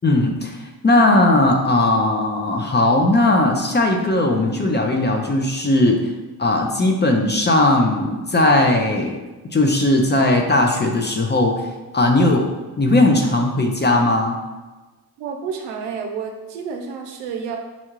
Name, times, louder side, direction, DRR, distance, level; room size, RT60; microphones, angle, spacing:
voice 1, 0.0-6.1 6.4-9.2 9.5-11.7 11.9-12.5 12.8-14.4, left 2 dB, 25° left, 2 dB, 0.6 m, -18 dB
voice 2, 15.2-17.6, right 6 dB, 80° right, 3 dB, 0.6 m, -30 dB
5.6 x 2.3 x 3.1 m, 1.2 s
supercardioid pair, 50°, 42 cm